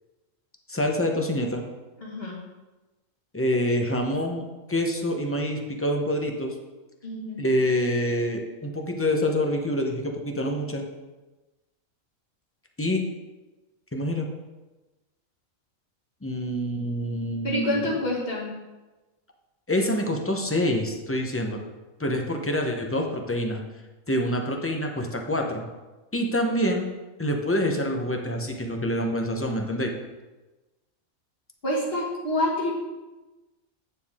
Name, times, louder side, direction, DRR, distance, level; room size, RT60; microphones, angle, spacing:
voice 1, 0.7-1.6 3.3-6.6 7.4-10.8 12.8-13.0 13.9-14.3 16.2-17.8 19.7-21.6 22.0-23.6 24.1-25.6 26.1-26.9 27.2-29.9, equal, 15° left, 2 dB, 0.7 m, -26 dB
voice 2, 2.0-2.4 7.0-7.4 17.4-18.5 31.6-32.7, left 1 dB, 45° left, -4 dB, 2.1 m, -27 dB
9.1 x 6.9 x 3.6 m, 1.1 s
omnidirectional pair, 1.4 m